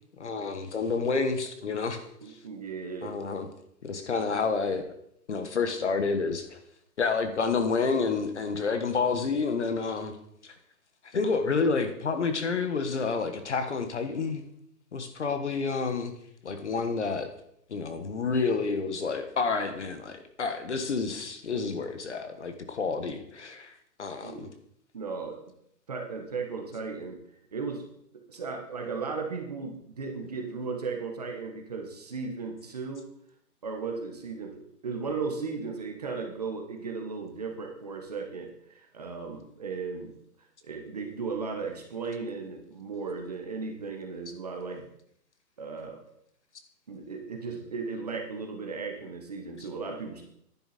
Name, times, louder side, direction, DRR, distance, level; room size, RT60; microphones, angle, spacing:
voice 1, 0.2-2.0 2.3-2.4 3.0-3.5 3.8-4.9 5.3-6.6 7.0-10.2 10.4-10.5 11.1-14.4 14.9-16.1 16.4-17.3 17.7-24.5, left 4 dB, 45° left, 8 dB, 1.4 m, -29 dB
voice 2, 2.2-3.1 24.2-24.5 24.9-25.4 25.9-27.2 27.5-27.9 28.3-33.1 33.6-40.1 40.6-44.9 45.6-46.0 46.9-50.3, right 4 dB, 25° right, 2 dB, 1.2 m, -36 dB
11.0 x 10.0 x 4.2 m, 0.72 s
hypercardioid pair, 175°, 47 cm